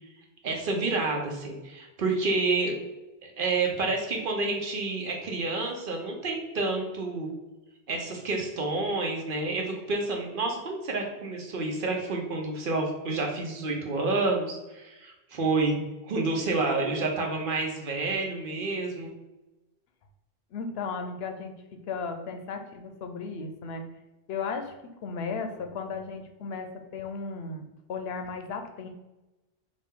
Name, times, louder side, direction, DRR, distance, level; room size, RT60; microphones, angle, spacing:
voice 1, 0.4-2.7 3.2-7.3 7.9-19.1, right 3 dB, 60° right, 1 dB, 0.9 m, -29 dB
voice 2, 20.5-21.5 21.9-23.8 24.3-28.9, left 4 dB, 80° left, 5 dB, 0.8 m, -35 dB
4.2 x 2.4 x 3.6 m, 1.0 s
omnidirectional pair, 1.0 m